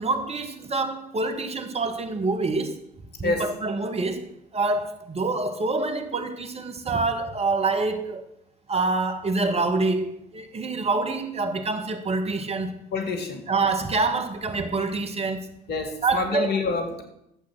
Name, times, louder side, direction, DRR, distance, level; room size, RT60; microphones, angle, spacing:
voice 1, 0.0-2.8 3.2-8.2 8.7-12.8 13.5-15.5 16.0-16.5, right 3 dB, 30° right, 1.6 m, -26 dB
voice 2, 12.9-13.5 15.7-17.0, left 3 dB, 55° left, 2.2 m, -27 dB
11.5 x 8.1 x 6.2 m
hypercardioid pair, 55°, 20 cm